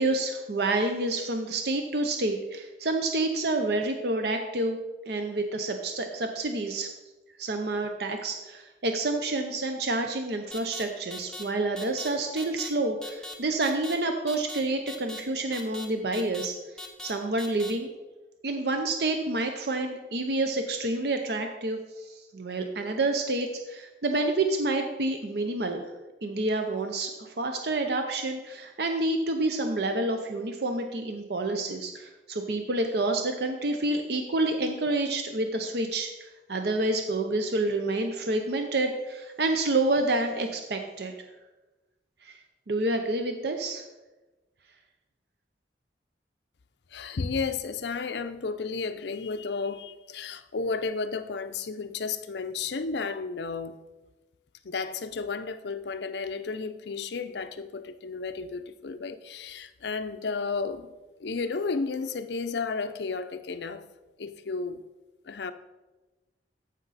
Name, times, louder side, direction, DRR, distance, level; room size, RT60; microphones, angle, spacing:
voice 1, 0.0-4.8 5.1-6.9 7.4-16.6 17.0-17.9 18.4-25.9 26.2-41.1 42.2-42.4 42.7-43.8, right 2 dB, 60° right, 0.6 m, -28 dB
sound 1, 10.5-10.8 11.1-11.4 11.8-12.1 12.4-12.7 13.0-13.3 13.6-13.9 14.3-14.6 14.9-15.2 15.5-15.8 16.1-16.5 16.8-17.1 17.4-17.7, left 1 dB, 5° left, 0.9 m, -40 dB
voice 2, 46.9-53.8 54.6-60.9 61.2-63.8 64.2-64.8 65.3-65.5, left 4 dB, 70° left, 0.6 m, -33 dB
14.0 x 5.3 x 4.1 m
head